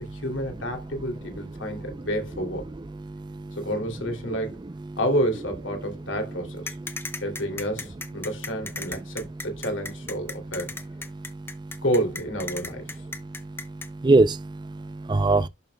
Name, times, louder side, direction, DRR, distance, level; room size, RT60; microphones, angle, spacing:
voice 1, 0.1-2.7 3.6-4.6 5.0-6.7 7.2-10.7 11.8-12.9, equal, 65° left, 2.7 m, -29 dB
voice 2, 3.1-3.6 6.9-7.2 14.0-15.5, right 2 dB, 20° right, 0.4 m, -23 dB
sound 1, 6.7-13.9, left 3 dB, 10° left, 0.8 m, -35 dB
11.0 x 5.9 x 2.2 m
head